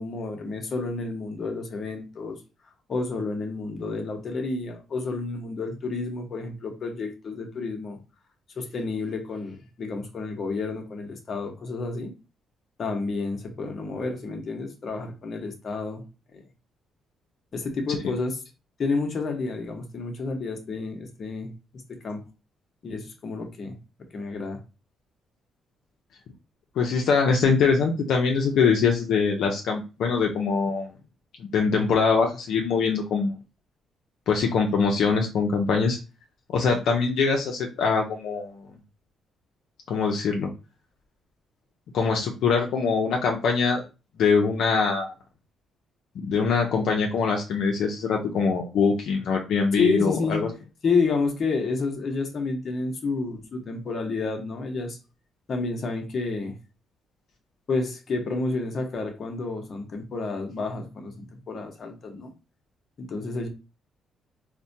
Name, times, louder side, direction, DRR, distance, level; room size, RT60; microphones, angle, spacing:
voice 1, 0.0-2.4 2.9-8.0 8.6-12.1 12.8-16.0 16.3-16.4 17.5-18.4 18.8-21.5 21.9-22.2 22.8-23.8 24.1-24.6 49.7-50.5 50.8-55.0 55.5-56.6 57.7-62.3 63.0-63.5, left 3 dB, 50° left, 3 dB, 0.9 m, -30 dB
voice 2, 26.8-30.9 31.5-33.4 34.3-36.0 36.5-38.6 39.9-40.5 41.9-43.8 44.2-45.1 46.2-50.5, left 5 dB, 75° left, 1 dB, 0.6 m, -23 dB
4.1 x 2.2 x 2.6 m, 0.30 s
cardioid pair, 90°, 0 cm